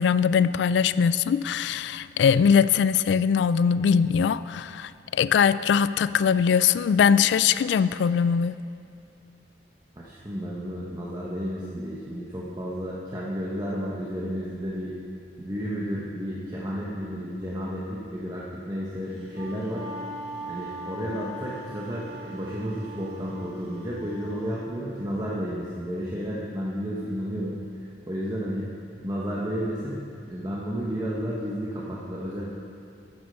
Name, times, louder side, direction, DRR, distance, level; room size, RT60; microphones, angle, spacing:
voice 1, 0.0-8.5, left 7 dB, 75° left, 15 dB, 0.3 m, -21 dB
voice 2, 10.0-15.0 15.4-19.9 20.4-27.6 28.1-28.7 29.0-30.0 30.3-32.5, equal, 20° right, -6 dB, 1.0 m, -32 dB
Wind instrument woodwind instrument, 19.1-24.5, right 1 dB, 65° right, 2.0 m, -40 dB
9.8 x 9.0 x 5.5 m, 2.5 s
head